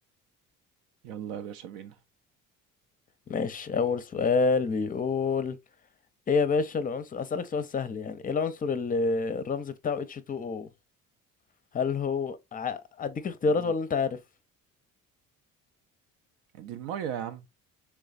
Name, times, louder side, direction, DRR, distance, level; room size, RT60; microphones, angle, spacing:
voice 1, 1.0-2.0 13.6-13.7 16.5-17.5, right 9 dB, 75° right, 0.5 m, -37 dB
voice 2, 3.3-5.6 6.3-10.7 11.7-14.2, left 4 dB, 25° left, 0.5 m, -28 dB
3.4 x 3.1 x 2.4 m
hypercardioid pair, 60°, 37 cm